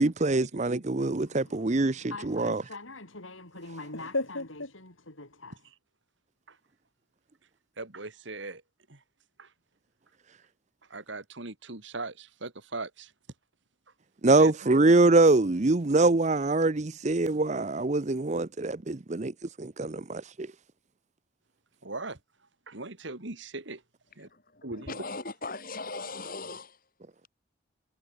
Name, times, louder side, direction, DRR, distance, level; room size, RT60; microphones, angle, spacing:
voice 1, 0.0-2.6 14.2-20.5, right 2 dB, 35° right, 0.7 m, -24 dB
voice 2, 1.1-5.7, left 2 dB, 75° left, 6.0 m, -39 dB
voice 3, 7.8-8.6 8.9-9.0 9.4-9.5 10.9-13.1 14.4-14.5 21.8-22.2 22.7-23.8 24.6-25.0, right 2 dB, 65° right, 2.2 m, -39 dB
voice 4, 24.7-26.8, left 3 dB, 45° left, 5.2 m, -38 dB
head